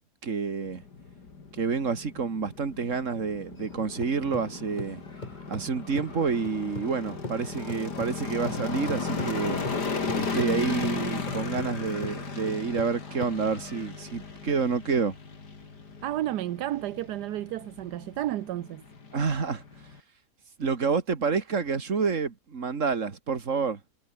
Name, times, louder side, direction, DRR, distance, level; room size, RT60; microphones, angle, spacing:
voice 1, 0.2-0.8 1.5-5.0 5.5-9.6 10.1-15.2 19.1-19.6 20.6-23.8, right 5 dB, 50° right, 2.4 m, -28 dB
sound 1, 0.6-20.0, left 4 dB, 85° left, 3.6 m, -36 dB
sound 2, 3.6-7.0 7.2-13.9, left 2 dB, 25° left, 3.4 m, -41 dB
voice 2, 16.0-18.8, right 14 dB, 80° right, 1.3 m, -32 dB
omnidirectional pair, 1.7 m